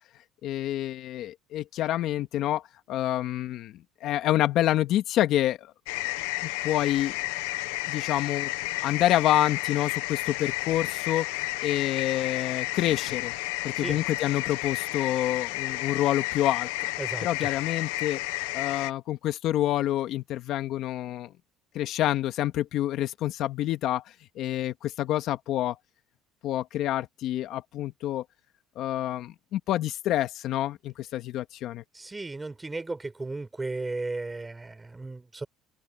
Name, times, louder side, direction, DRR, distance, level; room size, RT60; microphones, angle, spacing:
voice 1, 0.4-2.6 2.9-3.7 4.0-5.7 6.4-7.2 7.9-13.3 13.6-16.9 17.2-18.2 18.5-21.3 21.7-24.0 24.4-25.8 26.4-28.2 28.8-31.8, left 13 dB, 60° left, 2.0 m, -27 dB
sound 1, 5.9-18.9, left 20 dB, 90° left, 1.1 m, -32 dB
voice 2, 17.0-17.5 31.9-35.5, right 3 dB, 15° right, 5.0 m, -35 dB
supercardioid pair, 110°, 0 cm